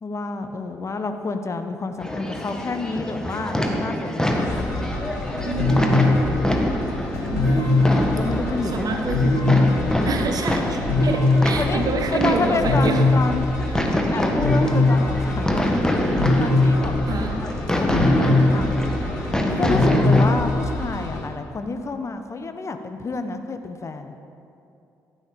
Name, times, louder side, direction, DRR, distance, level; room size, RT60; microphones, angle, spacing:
voice 1, 0.0-4.6 8.0-8.9 11.6-11.8 12.1-13.5 14.1-18.7 19.6-24.1, left 3 dB, 35° left, 7 dB, 1.1 m, -29 dB
sound 1, 2.0-20.3, left 1 dB, 10° left, 1.6 m, -25 dB
sound 2, 4.3-21.2, left 2 dB, 85° left, 2.2 m, -22 dB
voice 2, 5.4-6.1 7.3-7.9 8.6-9.5 10.0-13.1 13.7-14.1 17.1-17.4 19.5-20.0, right 4 dB, 50° right, 5 dB, 0.9 m, -28 dB
14.5 x 9.1 x 5.2 m, 2.7 s
figure-of-eight pair, 45°, 8 cm